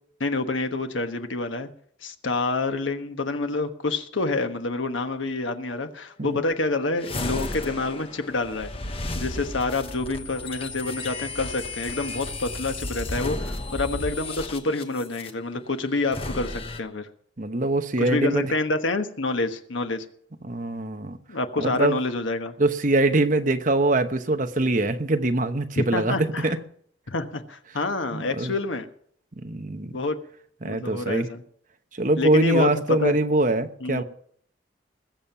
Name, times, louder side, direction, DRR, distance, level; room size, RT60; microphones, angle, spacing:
voice 1, 0.2-1.7 2.0-8.7 9.1-17.1 18.0-20.0 21.3-22.5 25.8-26.5 27.1-28.9 29.9-30.2 30.6-31.4 32.2-33.2 33.8-34.0, left 3 dB, 90° left, 1.3 m, -27 dB
sound 1, 7.0-15.3 16.0-16.8, left 2 dB, 30° left, 1.1 m, -33 dB
voice 2, 17.4-18.5 20.4-21.2 21.6-22.0 22.6-26.6 28.1-28.5 29.4-29.9 30.6-31.3 32.0-34.0, right 2 dB, 45° right, 1.0 m, -23 dB
21.0 x 7.2 x 5.9 m
head